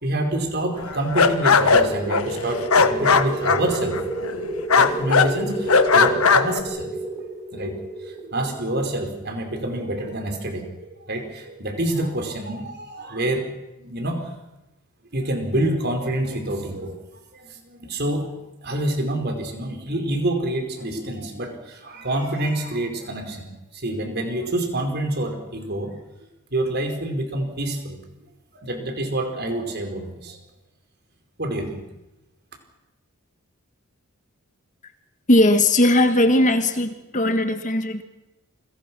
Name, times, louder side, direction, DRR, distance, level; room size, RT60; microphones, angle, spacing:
voice 1, 0.0-4.0 4.8-6.9 7.5-7.8 8.2-13.5 13.8-14.3 15.1-17.0 17.3-18.3 18.6-26.0 26.5-28.0 28.5-30.4 31.4-31.8, right 1 dB, 50° right, 4 dB, 4.8 m, -27 dB
sound 1, 0.8-4.4 4.7-5.3 5.7-6.6, left 5 dB, 80° left, 1.4 m, -18 dB
sound 2, 1.8-10.2, right 2 dB, 10° right, 5.8 m, -30 dB
voice 2, 35.3-38.0, left 1 dB, 35° left, 8 dB, 1.6 m, -18 dB
29.5 x 23.0 x 6.2 m, 0.97 s
head